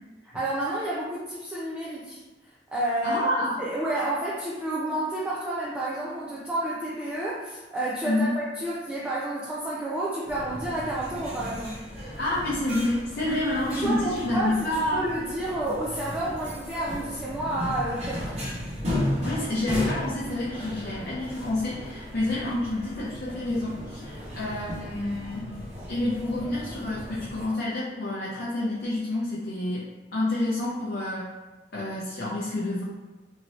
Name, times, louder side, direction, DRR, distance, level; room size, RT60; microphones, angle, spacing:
voice 1, 0.3-2.2 2.7-3.2 3.6-11.9 13.8-14.6 14.9-18.5, right 1 dB, 5° right, -8 dB, 0.3 m, -30 dB
voice 2, 3.0-3.6 8.0-8.3 12.2-15.1 19.2-25.5 25.9-31.3 31.7-32.8, left 1 dB, 60° left, -7 dB, 0.6 m, -28 dB
sound 1, 10.3-27.5, left 1 dB, 35° right, 0.8 m, -35 dB
2.9 x 2.6 x 3.0 m, 1.2 s
head